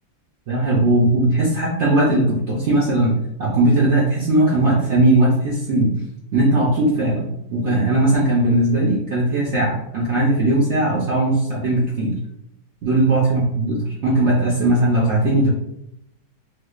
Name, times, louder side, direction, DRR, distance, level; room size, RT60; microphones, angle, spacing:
voice 1, 0.5-3.1 3.4-5.9 6.3-12.2 12.8-15.5, right 1 dB, 85° right, -4 dB, 0.6 m, -18 dB
4.5 x 2.2 x 2.3 m, 0.79 s
omnidirectional pair, 2.0 m